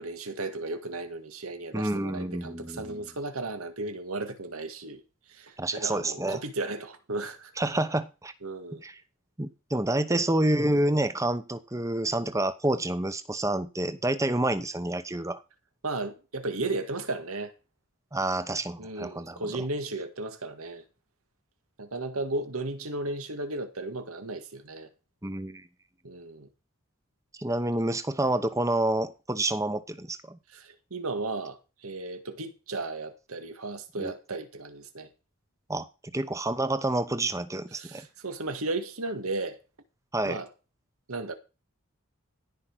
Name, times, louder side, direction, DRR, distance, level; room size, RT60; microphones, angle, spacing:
voice 1, 0.0-5.0 5.3-7.5 8.4-8.8 10.1-10.2 15.8-17.5 18.8-20.8 21.8-24.9 26.0-26.5 30.5-35.1 37.8-39.6 40.2-40.5 41.1-41.3, right 2 dB, 90° right, 2.0 m, -35 dB
voice 2, 1.7-3.0 5.6-6.4 7.6-8.3 8.8-9.0 9.4-15.4 18.1-19.5 25.2-25.7 27.4-30.4 34.0-34.1 35.7-38.1 40.1-40.4, right 1 dB, 15° right, 0.9 m, -28 dB
16.0 x 5.4 x 6.3 m
head